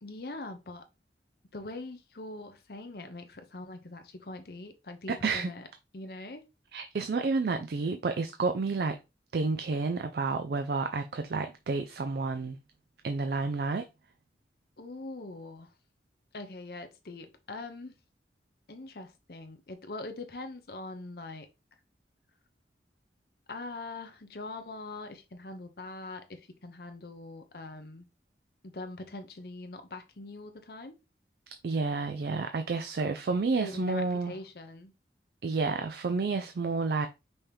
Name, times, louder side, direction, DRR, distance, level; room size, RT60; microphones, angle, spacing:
voice 1, 0.0-0.8 1.5-5.7 5.9-6.4 14.8-15.7 16.3-17.9 18.7-21.5 23.5-28.1 28.6-30.9 33.6-34.9, left 2 dB, 60° left, 0.8 m, -42 dB
voice 2, 5.1-5.5 6.7-9.0 9.3-12.6 13.0-13.9 31.6-34.3 35.4-37.1, right 4 dB, 60° right, 0.4 m, -30 dB
5.5 x 2.9 x 3.3 m
head